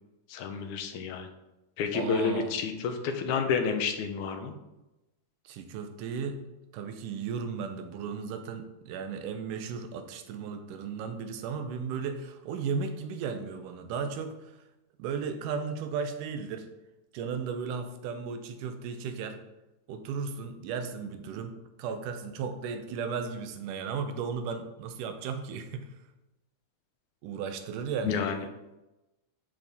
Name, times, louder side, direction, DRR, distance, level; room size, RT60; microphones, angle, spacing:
voice 1, 0.3-1.3 1.8-4.5 28.0-28.5, left 6 dB, 75° left, 6 dB, 2.1 m, -30 dB
voice 2, 1.9-2.5 5.5-14.6 15.0-16.7 17.1-19.4 19.9-25.9 27.2-28.2, right 6 dB, 85° right, 7 dB, 2.3 m, -35 dB
10.5 x 4.0 x 3.5 m, 0.98 s
omnidirectional pair, 3.6 m